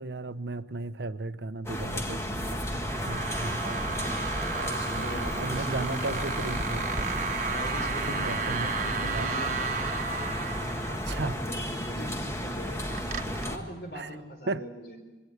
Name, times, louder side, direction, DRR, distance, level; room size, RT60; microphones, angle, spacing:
voice 1, 0.0-4.2 4.9-7.1 8.0-9.3 10.9-11.4 12.9-13.2 13.9-14.2 14.5-14.7, right 3 dB, 75° right, 13 dB, 0.8 m, -36 dB
sound 1, 1.6-13.6, equal, 15° left, 1.5 m, -33 dB
sound 2, 2.4-13.5, right 4 dB, 45° right, 1.3 m, -34 dB
voice 2, 4.5-6.3 7.5-9.5 10.4-12.9 13.4-15.0, equal, 65° left, 5 dB, 4.2 m, -42 dB
21.5 x 17.5 x 8.0 m, 1.2 s
head